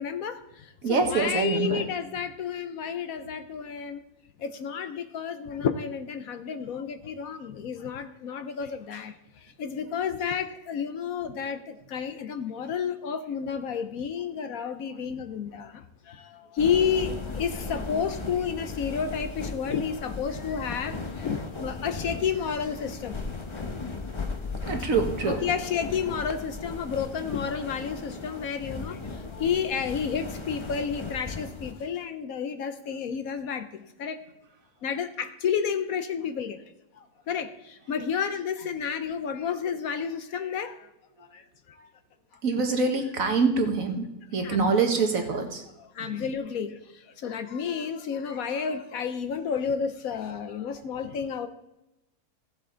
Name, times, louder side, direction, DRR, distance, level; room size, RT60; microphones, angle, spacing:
voice 1, 0.0-4.0 4.4-9.1 9.6-23.2 25.3-34.2 34.8-36.6 37.3-40.9 41.3-41.4 44.4-44.7 45.8-46.8 47.2-51.5, left 7 dB, 65° left, 9 dB, 1.1 m, -31 dB
voice 2, 0.8-1.9 24.6-25.4 42.4-45.6 46.0-46.3, right 4 dB, 55° right, 5 dB, 1.6 m, -25 dB
sound 1, 16.6-31.7, left 3 dB, 25° left, 0.6 m, -36 dB
15.5 x 7.7 x 3.8 m, 0.92 s
omnidirectional pair, 1.7 m